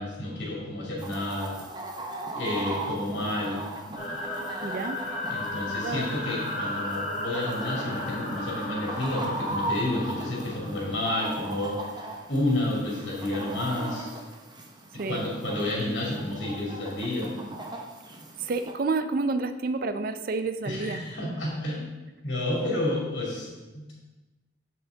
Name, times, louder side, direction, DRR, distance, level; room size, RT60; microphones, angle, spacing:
voice 1, 0.0-1.6 2.3-3.6 5.3-14.1 15.1-17.3 20.6-21.8 22.2-23.9, left 1 dB, 75° left, -3 dB, 2.6 m, -30 dB
Chicken rooster, 1.0-18.7, right 2 dB, 25° right, 0.8 m, -38 dB
sound 1, 4.0-11.9, left 1 dB, 45° left, 2.5 m, -35 dB
voice 2, 4.6-5.1 5.7-6.1 14.9-15.2 18.4-21.4, right 3 dB, 50° right, 10 dB, 0.4 m, -30 dB
7.2 x 6.1 x 3.9 m, 1.1 s
head